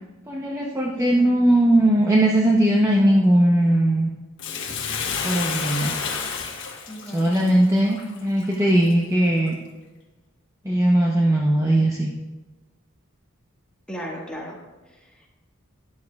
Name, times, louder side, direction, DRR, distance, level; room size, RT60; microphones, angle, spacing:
voice 1, 0.3-4.1 5.2-5.9 7.1-9.6 10.6-12.1, right 1 dB, 15° right, -2 dB, 0.8 m, -19 dB
voice 2, 1.0-1.3 6.9-7.5 13.9-14.6 15.1-15.3, equal, 5° left, -3 dB, 1.6 m, -35 dB
Bathtub (filling or washing), 4.4-8.9 9.5-9.6, left 5 dB, 60° left, 1.3 m, -30 dB
13.0 x 9.6 x 2.3 m, 1.2 s
head